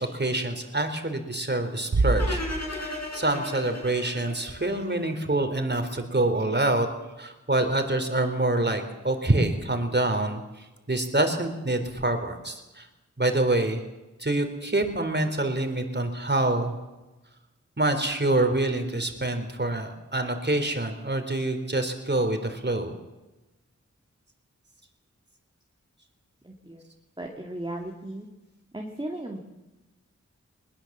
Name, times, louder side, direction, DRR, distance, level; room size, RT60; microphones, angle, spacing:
voice 1, 0.0-2.4 2.8-6.9 7.2-10.4 10.9-12.9 13.2-13.8 14.2-16.7 17.8-22.9, right 2 dB, 35° right, 7 dB, 3.5 m, -26 dB
sound 1, 1.9-3.4, right 3 dB, 70° right, 1.4 m, -26 dB
sound 2, 2.2-5.3, left 2 dB, 60° left, 7.1 m, -35 dB
voice 2, 26.4-26.8 27.2-28.3 28.7-29.4, right 1 dB, 15° right, 1 dB, 2.5 m, -36 dB
21.5 x 21.0 x 7.3 m, 1.1 s
wide cardioid pair, 60°, 30 cm